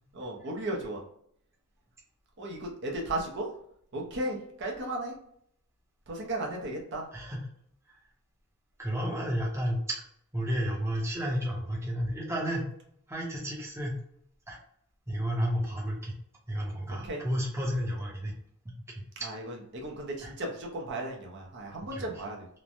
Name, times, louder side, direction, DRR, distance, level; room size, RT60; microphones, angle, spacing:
voice 1, 0.1-1.0 2.4-3.5 3.9-5.1 6.1-7.0 17.0-17.2 19.2-22.5, right 1 dB, 55° right, -1 dB, 0.6 m, -35 dB
voice 2, 7.1-7.5 7.9-8.0 8.8-9.8 10.3-12.7 13.1-14.0 14.5-14.6 15.1-16.2 16.5-18.3 18.6-19.0 20.2-20.3 21.9-22.0, equal, 10° right, -3 dB, 0.7 m, -32 dB
3.1 x 2.1 x 2.5 m, 0.69 s
head